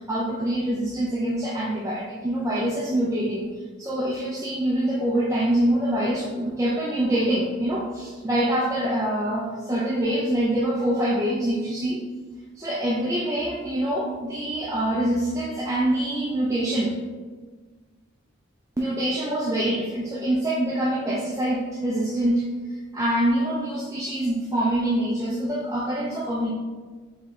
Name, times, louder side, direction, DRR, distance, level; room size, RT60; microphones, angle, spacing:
voice 1, 0.0-3.4 3.8-12.0 12.6-16.9 18.8-22.5 22.9-26.5, right 1 dB, 15° right, -5 dB, 0.4 m, -25 dB
4.8 x 3.1 x 3.6 m, 1.4 s
head